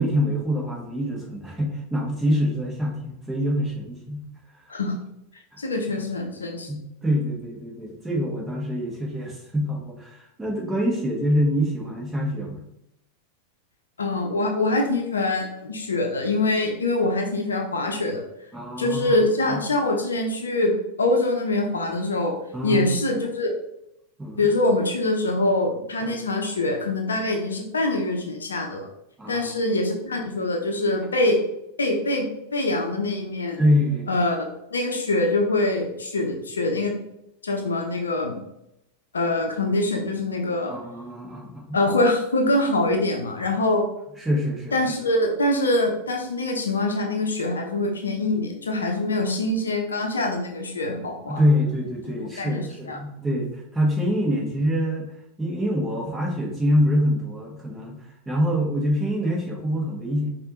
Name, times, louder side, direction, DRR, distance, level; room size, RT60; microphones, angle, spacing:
voice 1, 0.0-4.2 4.5-4.6 6.7-12.6 18.5-19.2 19.5-19.6 22.5-23.0 24.2-24.5 26.0-26.1 29.2-29.5 33.6-34.1 40.6-41.8 44.2-44.7 49.1-49.3 51.3-55.1 55.4-60.3, equal, 10° right, -3 dB, 1.4 m, -25 dB
voice 2, 5.6-6.7 14.0-18.2 18.8-22.3 22.6-23.5 24.4-28.9 29.3-31.4 31.8-33.6 34.1-34.4 34.7-37.0 37.4-38.4 39.1-40.7 41.7-43.8 44.7-51.4 52.1-53.0, left 2 dB, 70° left, 2 dB, 0.8 m, -24 dB
5.2 x 2.7 x 3.7 m, 0.82 s
figure-of-eight pair, 90°, 0 cm